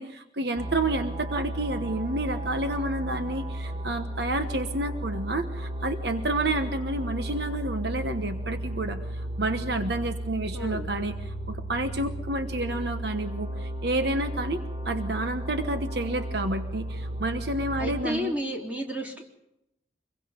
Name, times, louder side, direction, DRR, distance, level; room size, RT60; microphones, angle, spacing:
voice 1, 0.0-18.3, right 2 dB, 60° right, 7 dB, 1.2 m, -30 dB
sound 1, 0.6-18.0, right 1 dB, 25° right, 1.9 m, -34 dB
voice 2, 10.5-10.9 17.8-19.2, equal, 10° right, -1 dB, 3.6 m, -32 dB
26.0 x 22.5 x 5.3 m, 0.84 s
head